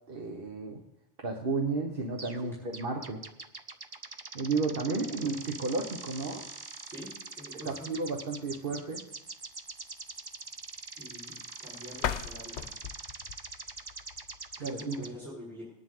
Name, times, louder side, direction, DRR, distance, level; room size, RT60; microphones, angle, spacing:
voice 1, 0.1-0.8 1.2-3.2 4.3-6.5 7.7-9.0 14.6-15.0, right 3 dB, 50° right, 2 dB, 1.3 m, -32 dB
sound 1, 2.2-2.4 2.7-15.1, right 3 dB, 30° right, 0.5 m, -44 dB
voice 2, 4.9-5.3 6.9-7.9 11.0-12.6 14.6-15.7, left 1 dB, ahead, -7 dB, 4.7 m, -45 dB
sound 2, 11.9-14.8, left 9 dB, 80° left, 0.9 m, -38 dB
19.5 x 10.5 x 3.8 m, 0.84 s
omnidirectional pair, 1.2 m